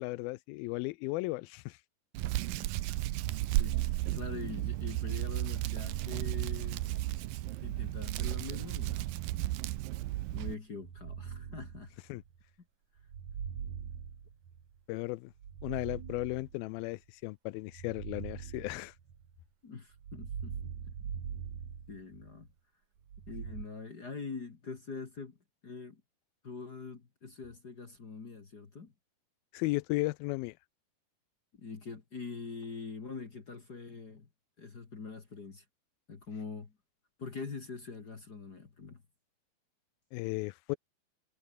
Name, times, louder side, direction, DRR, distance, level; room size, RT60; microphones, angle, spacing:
voice 1, 0.0-1.8 12.1-12.2 14.9-15.3 15.6-18.9 29.5-30.5 40.1-40.8, left 21 dB, 90° left, 2.5 m, -35 dB
Hands, 2.1-10.5, right 16 dB, 75° right, 2.5 m, -34 dB
voice 2, 4.1-6.9 7.6-9.1 10.3-11.9 19.6-20.7 21.9-22.5 23.3-25.4 25.6-26.0 26.4-28.9 31.5-34.3 34.6-35.6 36.1-36.8 37.2-39.0, left 4 dB, 35° left, 2.0 m, -44 dB
sound 1, 10.8-12.4 13.0-14.8 15.3-16.9 17.7-19.4 19.9-22.5 23.1-23.6, right 7 dB, 55° right, 3.7 m, -43 dB
omnidirectional pair, 4.2 m